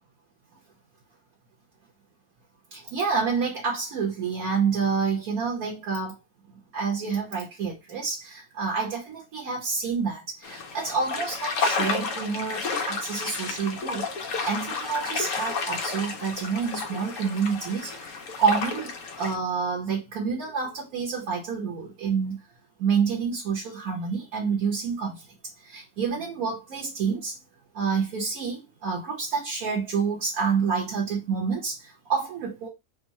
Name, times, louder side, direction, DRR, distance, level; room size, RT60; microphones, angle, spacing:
voice 1, 2.7-6.2 6.7-14.1 14.4-18.9 19.2-22.4 22.8-25.3 25.6-27.4 27.7-32.7, right 5 dB, 65° right, 1.4 m, -28 dB
sound 1, 10.4-19.4, left 4 dB, 65° left, 0.9 m, -31 dB
3.7 x 2.2 x 4.0 m
omnidirectional pair, 1.7 m